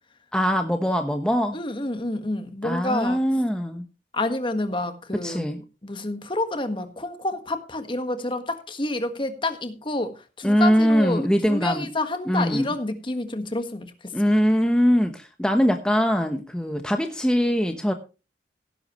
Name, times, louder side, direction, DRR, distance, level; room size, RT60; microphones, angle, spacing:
voice 1, 0.3-1.6 2.6-3.9 5.2-5.6 10.4-11.9 12.3-12.7 14.1-17.9, equal, 5° left, 5 dB, 1.0 m, -22 dB
voice 2, 1.5-3.2 4.1-5.5 5.8-14.1, left 2 dB, 25° left, 8 dB, 1.5 m, -29 dB
17.0 x 11.0 x 3.1 m, 0.31 s
head